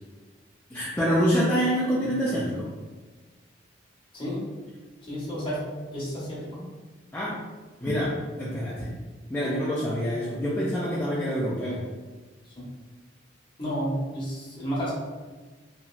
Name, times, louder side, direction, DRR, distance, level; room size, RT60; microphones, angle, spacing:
voice 1, 0.7-2.7 7.1-7.4 7.8-8.9 9.3-11.8, equal, 10° left, -8 dB, 0.4 m, -26 dB
voice 2, 4.1-4.5 5.0-6.7 12.6-12.7 13.6-14.9, equal, 25° left, -6 dB, 0.8 m, -31 dB
2.9 x 2.5 x 2.4 m, 1.3 s
head